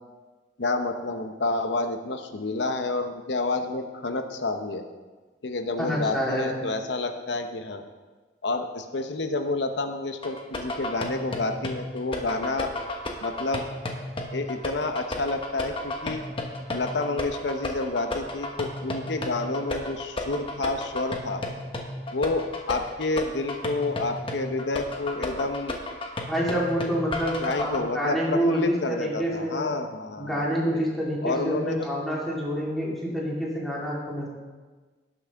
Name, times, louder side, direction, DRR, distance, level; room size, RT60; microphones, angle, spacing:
voice 1, 0.6-4.9 5.4-7.8 8.4-12.7 13.2-13.6 14.3-16.2 16.7-21.4 22.1-25.8 27.4-30.9 31.2-31.9, left 2 dB, 70° left, 7 dB, 0.8 m, -29 dB
voice 2, 5.8-6.5 26.2-29.7 30.2-34.3, equal, ahead, -5 dB, 2.3 m, -27 dB
sound 1, 10.2-27.8, left 2 dB, 30° left, 1.1 m, -33 dB
18.0 x 6.1 x 3.5 m, 1.3 s
head